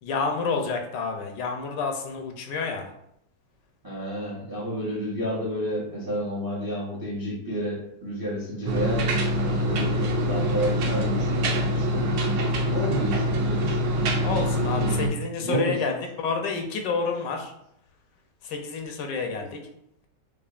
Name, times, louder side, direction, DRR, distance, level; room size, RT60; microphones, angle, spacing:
voice 1, 0.0-2.8 14.2-17.5 18.4-19.6, left 4 dB, 80° left, 3 dB, 1.2 m, -29 dB
voice 2, 3.8-12.1 12.7-13.8 14.7-15.0 15.4-15.8, equal, 25° right, -5 dB, 0.5 m, -31 dB
sound 1, 8.7-15.1, equal, 85° right, 1.3 m, -24 dB
4.9 x 2.4 x 2.4 m, 0.76 s
omnidirectional pair, 1.9 m